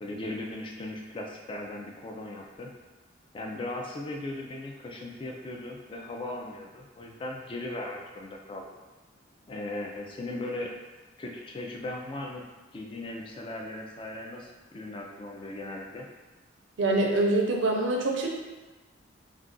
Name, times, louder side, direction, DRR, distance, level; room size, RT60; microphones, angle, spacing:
voice 1, 0.0-2.7 3.3-8.7 9.5-10.7 11.2-12.4 12.7-16.1, left 2 dB, 25° left, 0 dB, 0.3 m, -38 dB
voice 2, 16.8-18.3, right 2 dB, 75° right, 0 dB, 0.5 m, -25 dB
2.3 x 2.2 x 3.7 m, 1.2 s
head